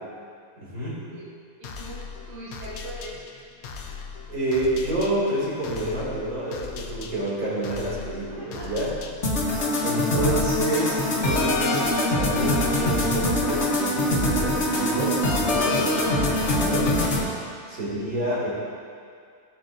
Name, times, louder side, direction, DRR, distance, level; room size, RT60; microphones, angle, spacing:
voice 1, 0.6-1.1 4.3-8.9 9.8-16.9 17.7-18.5, right 1 dB, 75° right, -8 dB, 2.9 m, -28 dB
sound 1, 1.6-9.5, left 5 dB, 80° left, 1.2 m, -39 dB
voice 2, 1.6-3.3 8.3-8.8, right 1 dB, 55° right, -8 dB, 1.6 m, -41 dB
sound 2, 9.2-17.2, left 1 dB, 55° left, 1.3 m, -23 dB
15.5 x 5.7 x 2.6 m, 2.2 s
omnidirectional pair, 1.5 m